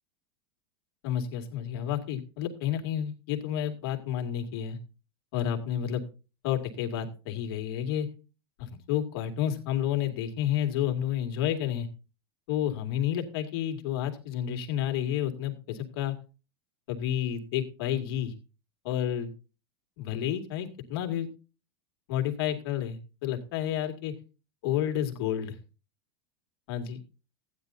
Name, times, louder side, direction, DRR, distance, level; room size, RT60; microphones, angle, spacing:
voice 1, 1.0-4.8 5.3-6.0 6.4-8.1 8.6-11.9 12.5-16.2 16.9-18.3 18.8-19.3 20.0-21.3 22.1-24.1 24.6-25.6 26.7-27.0, left 10 dB, 65° left, 4 dB, 2.3 m, -30 dB
15.0 x 10.0 x 2.7 m, 0.32 s
supercardioid pair, 135°, 13 cm